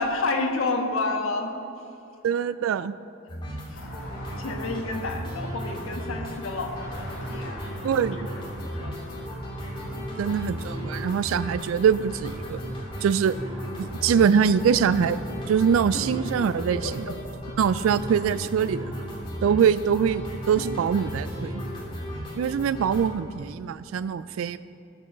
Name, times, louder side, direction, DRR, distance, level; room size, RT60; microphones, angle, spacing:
voice 1, 0.0-1.5 3.7-3.8 4.3-7.8 8.5-9.2 16.6-17.2 20.6-20.7, left 3 dB, 85° left, 4 dB, 1.3 m, -30 dB
voice 2, 2.2-2.9 7.8-8.3 10.2-12.6 13.0-13.3 13.8-15.2 15.5-17.1 17.6-19.0 19.4-21.6 22.3-24.6, right 7 dB, 75° right, 14 dB, 0.3 m, -23 dB
sound 1, 3.3-23.0, equal, 25° left, 2.6 m, -35 dB
sound 2, 3.7-16.6, left 1 dB, 65° left, 2.5 m, -46 dB
14.5 x 6.2 x 6.5 m, 2.7 s
head